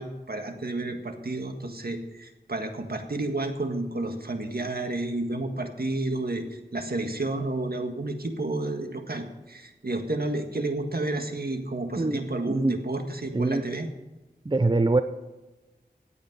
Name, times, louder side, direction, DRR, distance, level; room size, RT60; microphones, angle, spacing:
voice 1, 0.0-13.9, right 2 dB, 60° right, 5 dB, 1.7 m, -31 dB
voice 2, 14.5-15.0, right 2 dB, 25° right, 10 dB, 0.6 m, -23 dB
16.0 x 8.6 x 5.4 m, 1.1 s
wide cardioid pair, 45°, 18 cm